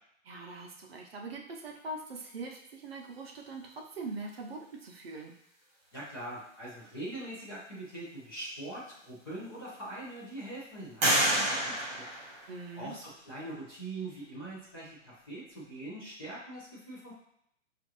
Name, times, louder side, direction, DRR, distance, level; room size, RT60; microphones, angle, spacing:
voice 1, 0.2-5.3 12.5-12.9, right 3 dB, 50° right, 1 dB, 0.6 m, -42 dB
voice 2, 5.9-12.0 12.8-17.1, right 1 dB, 20° left, -8 dB, 0.6 m, -42 dB
sound 1, 8.7-8.8 9.4-10.1 11.0-13.0, right 1 dB, 30° right, 1.1 m, -30 dB
5.3 x 2.5 x 2.9 m, 0.72 s
hypercardioid pair, 170°, 39 cm